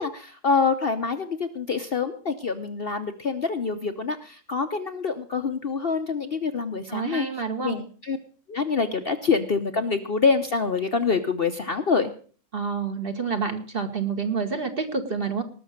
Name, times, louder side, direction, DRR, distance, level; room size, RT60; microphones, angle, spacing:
voice 1, 0.0-7.3 7.6-8.2 8.5-12.1, left 5 dB, 45° left, 7 dB, 0.9 m, -26 dB
voice 2, 6.9-7.8 12.5-15.4, right 5 dB, 40° right, 6 dB, 1.5 m, -28 dB
19.0 x 6.4 x 6.4 m, 0.42 s
omnidirectional pair, 1.6 m